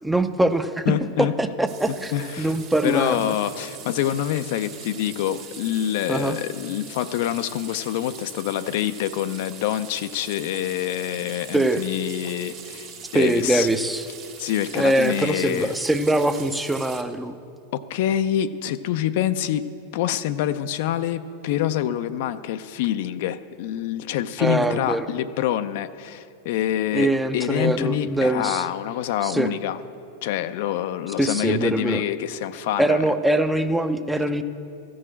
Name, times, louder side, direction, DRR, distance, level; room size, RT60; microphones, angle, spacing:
voice 1, 0.0-0.9 1.2-3.4 6.1-6.4 11.5-11.8 13.1-14.1 14.7-17.4 24.4-25.1 26.9-28.7 29.2-29.5 31.2-32.0 32.8-34.4, right 1 dB, 5° right, 10 dB, 0.5 m, -23 dB
voice 2, 0.9-1.3 2.1-2.5 2.8-12.9 13.1-13.7 14.4-15.7 17.7-19.7 19.9-29.8 30.2-33.0, left 11 dB, 50° left, 11 dB, 0.4 m, -26 dB
sound 1, 1.7-17.0, right 7 dB, 40° right, 1.3 m, -42 dB
14.5 x 6.3 x 8.7 m, 2.5 s
figure-of-eight pair, 90°, 0 cm